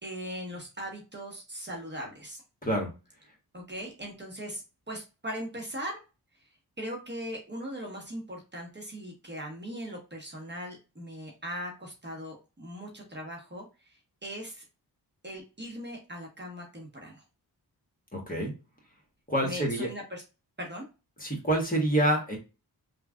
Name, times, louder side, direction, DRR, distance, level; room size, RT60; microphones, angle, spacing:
voice 1, 0.0-2.4 3.5-6.0 6.8-14.6 15.2-17.2 19.4-20.2 20.6-20.9, equal, 25° right, 0 dB, 1.1 m, -39 dB
voice 2, 18.1-18.5 19.3-19.9 21.2-22.4, right 1 dB, 20° left, -1 dB, 1.4 m, -27 dB
3.2 x 2.4 x 2.3 m, 0.30 s
cardioid pair, 50°, 40 cm